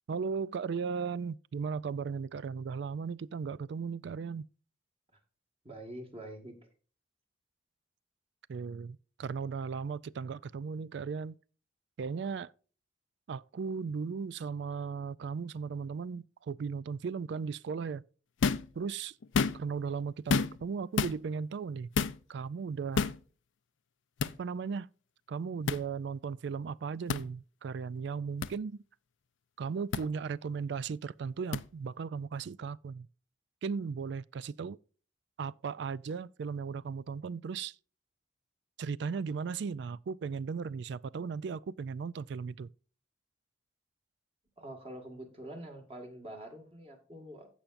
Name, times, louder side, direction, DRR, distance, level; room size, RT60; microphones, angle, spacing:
voice 1, 0.1-4.5 8.5-11.4 12.0-12.5 13.3-18.0 18.8-19.1 19.5-21.9 22.3-23.1 24.4-24.9 25.3-28.8 29.6-33.1 33.6-34.8 35.4-37.7 38.8-42.7, right 5 dB, 60° right, 0.3 m, -36 dB
voice 2, 5.6-6.5 44.6-47.5, right 1 dB, 30° right, 1.8 m, -45 dB
sound 1, 18.4-18.7 19.2-19.8 20.3-20.7 21.0-21.2 22.0-22.2 23.0-23.2 24.2-24.3 25.7-25.8 27.1-27.2 28.4-28.5 29.9-30.0 31.5-31.6, left 5 dB, 80° left, 0.5 m, -29 dB
15.5 x 5.8 x 2.5 m
head